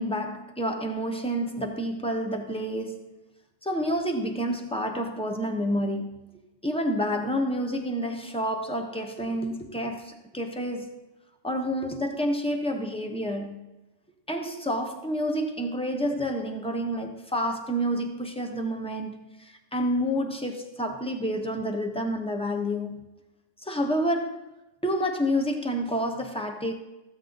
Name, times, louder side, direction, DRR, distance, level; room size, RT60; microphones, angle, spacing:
voice 1, 0.0-3.1 3.6-6.2 6.6-11.0 11.4-13.6 14.3-23.1 23.6-24.4 24.8-26.7, equal, 5° left, 1.0 m, -29 dB
14.5 x 7.8 x 4.0 m
omnidirectional pair, 1.5 m